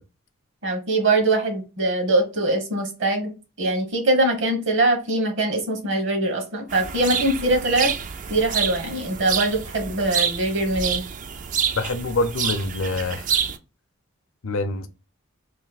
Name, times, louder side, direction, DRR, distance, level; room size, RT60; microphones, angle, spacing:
voice 1, 0.6-3.3 3.6-7.9 8.3-11.0, right 2 dB, 60° right, 1.3 m, -22 dB
sound 1, 6.7-13.6, right 8 dB, 40° right, 0.3 m, -28 dB
voice 2, 11.8-13.4 14.4-14.9, left 2 dB, 70° left, 0.6 m, -26 dB
3.1 x 2.6 x 4.0 m
head